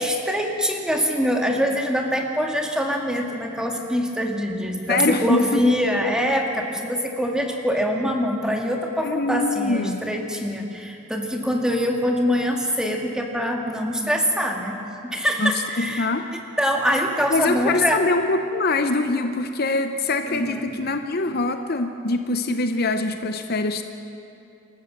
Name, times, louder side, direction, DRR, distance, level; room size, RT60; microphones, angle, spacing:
voice 1, 0.0-14.7 15.1-16.1 16.6-18.0 20.3-20.7, equal, 5° right, 1 dB, 1.7 m, -24 dB
voice 2, 4.9-5.6 9.0-10.0 15.4-15.5 15.8-16.3 17.3-23.8, left 2 dB, 45° left, 7 dB, 0.8 m, -23 dB
27.5 x 14.0 x 7.4 m, 2.7 s
head